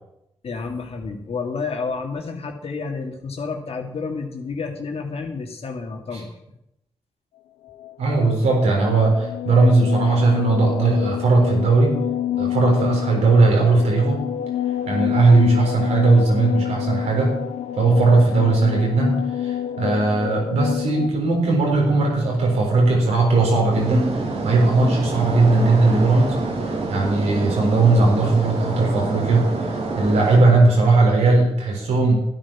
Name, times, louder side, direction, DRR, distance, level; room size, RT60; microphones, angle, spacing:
voice 1, 0.4-6.3, left 4 dB, 65° left, 3 dB, 2.4 m, -30 dB
sound 1, 7.7-21.1, left 11 dB, 85° left, 0.6 m, -28 dB
voice 2, 8.0-12.0 12.4-14.2 14.9-17.3 17.8-24.1 24.4-26.4 26.9-29.5 29.9-32.1, right 3 dB, 85° right, -1 dB, 4.0 m, -18 dB
sound 2, 23.7-30.4, right 3 dB, 70° right, 2.8 m, -27 dB
12.5 x 9.6 x 6.0 m, 0.83 s
supercardioid pair, 45°, 11 cm